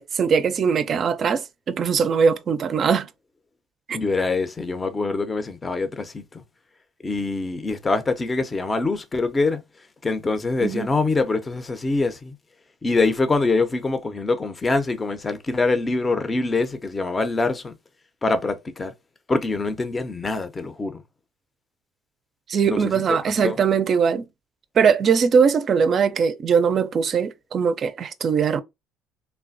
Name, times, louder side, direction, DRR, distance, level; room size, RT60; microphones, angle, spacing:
voice 1, 0.0-3.1 3.9-4.0 10.6-10.9 22.5-24.3 24.8-28.6, right 6 dB, 50° right, 0.4 m, -21 dB
voice 2, 3.9-6.4 7.0-9.6 10.0-12.3 12.8-17.7 18.2-18.9 19.3-21.0 22.7-23.6, left 3 dB, 25° left, 0.5 m, -24 dB
3.2 x 2.2 x 2.5 m
supercardioid pair, 70°, 0 cm